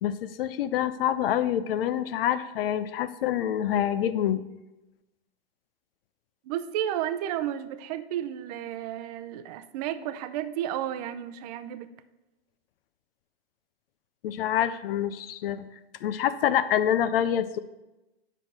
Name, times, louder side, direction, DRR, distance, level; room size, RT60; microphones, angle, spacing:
voice 1, 0.0-4.4 14.2-15.7 16.0-17.6, left 10 dB, 65° left, 13 dB, 0.6 m, -26 dB
voice 2, 6.4-11.9, right 11 dB, 40° right, 12 dB, 0.6 m, -32 dB
9.8 x 6.3 x 4.0 m, 1.0 s
hypercardioid pair, 150°, 32 cm